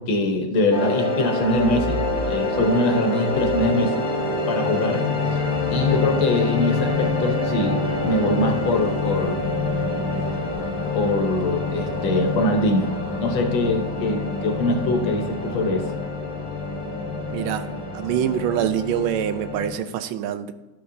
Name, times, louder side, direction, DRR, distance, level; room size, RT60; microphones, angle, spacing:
voice 1, 0.0-2.0 2.3-3.9 4.5-5.1 5.7-9.5 10.9-15.9, left 2 dB, 70° left, 4 dB, 1.7 m, -23 dB
sound 1, 0.7-19.7, left 3 dB, 20° left, 0.6 m, -26 dB
sound 2, 1.3-2.8 3.2-8.7 10.3-10.6, right 1 dB, 70° right, 1.9 m, -37 dB
Singing, 7.5-18.6, left 1 dB, 25° right, 0.7 m, -36 dB
voice 2, 17.3-20.5, right 10 dB, 90° right, 11 dB, 1.4 m, -25 dB
11.5 x 6.0 x 2.6 m, 1.2 s
omnidirectional pair, 2.2 m